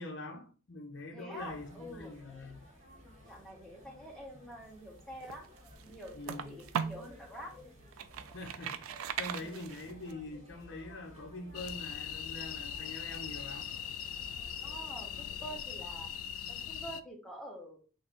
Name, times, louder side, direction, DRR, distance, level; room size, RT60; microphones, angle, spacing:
voice 1, 0.0-2.6 6.1-6.6 8.3-13.7, left 2 dB, 60° left, 0.6 m, -44 dB
voice 2, 1.1-2.1 3.3-5.5 5.8-7.6 9.4-9.5 14.6-16.1 16.5-17.8, equal, ahead, 0.9 m, -47 dB
sound 1, 1.4-15.5, left 1 dB, 30° right, 1.4 m, -56 dB
sound 2, 5.0-7.1 7.6-10.1, right 8 dB, 80° right, 0.3 m, -39 dB
sound 3, 11.5-17.0, left 8 dB, 85° left, 0.3 m, -40 dB
3.2 x 2.5 x 4.1 m
head